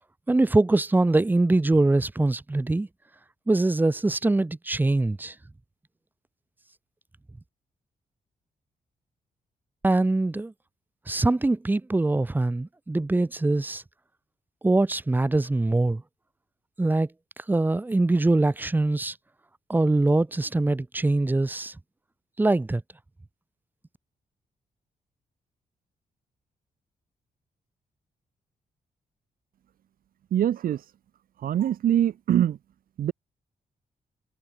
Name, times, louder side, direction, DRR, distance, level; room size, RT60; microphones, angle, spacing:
voice 1, 0.3-2.9 3.5-5.3 9.8-10.5 11.1-13.8 14.6-16.0 16.8-17.1 17.4-19.2 19.7-21.7 22.4-22.8, right 2 dB, 10° right, 3.1 m, -23 dB
voice 2, 30.3-30.8 31.4-32.6 33.0-33.1, right 10 dB, 80° right, 3.0 m, -23 dB
wide cardioid pair, 175°, 15 cm